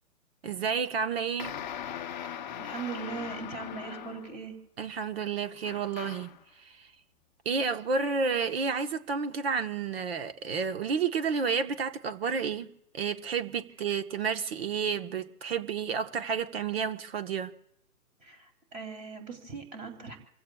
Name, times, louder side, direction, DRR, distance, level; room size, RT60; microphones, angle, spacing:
voice 1, 0.4-1.5 4.8-6.4 6.6-6.9 7.4-12.7 12.9-17.5, right 5 dB, 40° right, 1.2 m, -30 dB
sound 1, 1.4-4.4 5.6-6.4, left 9 dB, 30° left, 0.8 m, -40 dB
voice 2, 2.2-4.5 18.2-20.2, right 5 dB, 15° right, 2.9 m, -40 dB
28.5 x 15.5 x 2.3 m
figure-of-eight pair, 135°, 44 cm